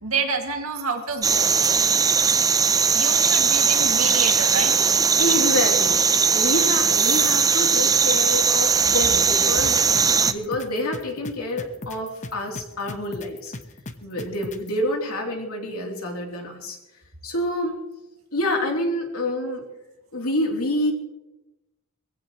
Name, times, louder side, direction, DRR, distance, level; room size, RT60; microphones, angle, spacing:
voice 1, 0.0-1.5 2.9-4.7, right 5 dB, 75° right, 3 dB, 2.3 m, -28 dB
sound 1, 1.2-10.3, right 6 dB, 15° right, 0.5 m, -19 dB
voice 2, 5.2-6.0 6.3-9.8 10.3-13.5 14.0-16.8 17.2-17.7 18.3-19.6 20.1-20.9, left 1 dB, 80° left, 1 dB, 3.3 m, -27 dB
sound 2, 9.6-14.7, left 2 dB, 35° left, 0.9 m, -36 dB
22.5 x 15.5 x 3.1 m, 0.96 s
head